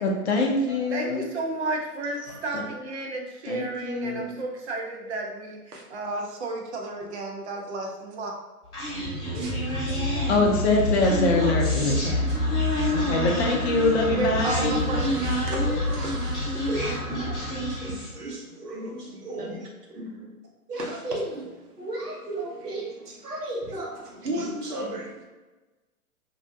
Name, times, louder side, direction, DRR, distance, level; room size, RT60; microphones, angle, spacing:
voice 1, 0.0-1.3 2.5-2.6 3.5-4.3 10.1-12.2 12.8-14.7, left 2 dB, 45° left, 1 dB, 0.5 m, -24 dB
voice 2, 0.9-8.4 14.2-15.2, right 2 dB, 45° right, 1 dB, 0.6 m, -32 dB
Human voice, 8.7-18.2, left 1 dB, 10° left, 1.0 m, -27 dB
voice 3, 9.2-10.3 11.4-11.5 12.3-12.9 13.4-13.5 14.0-14.6 15.0-20.3 20.7-25.2, right 1 dB, 85° right, -2 dB, 0.9 m, -36 dB
2.6 x 2.1 x 2.6 m, 1.2 s
figure-of-eight pair, 115°, 45 cm